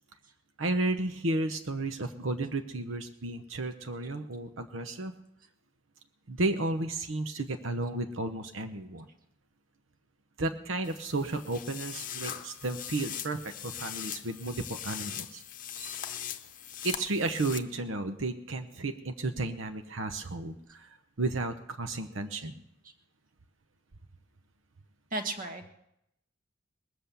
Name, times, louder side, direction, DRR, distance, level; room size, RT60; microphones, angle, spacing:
voice 1, 0.6-5.1 6.3-9.1 10.4-15.4 15.8-16.0 16.8-22.5, right 2 dB, 80° right, 7 dB, 0.9 m, -33 dB
sound 1, 10.8-17.6, left 10 dB, 45° left, 0.8 m, -40 dB
voice 2, 25.1-25.7, right 2 dB, 45° right, 7 dB, 1.4 m, -34 dB
21.0 x 7.9 x 6.9 m, 0.82 s
head